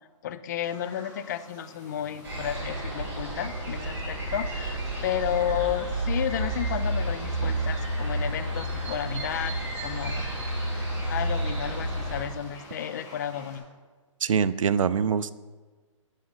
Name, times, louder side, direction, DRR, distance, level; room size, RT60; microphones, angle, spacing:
voice 1, 0.2-9.5 9.8-10.3 10.7-13.7, left 10 dB, 35° left, 12 dB, 0.5 m, -32 dB
sound 1, 0.6-13.6, left 2 dB, 15° left, 2.0 m, -50 dB
sound 2, 2.2-12.3, right 1 dB, 15° right, 2.5 m, -30 dB
voice 2, 14.2-15.3, right 7 dB, 80° right, 15 dB, 0.5 m, -24 dB
7.3 x 6.5 x 5.6 m, 1.4 s
hypercardioid pair, 155°, 17 cm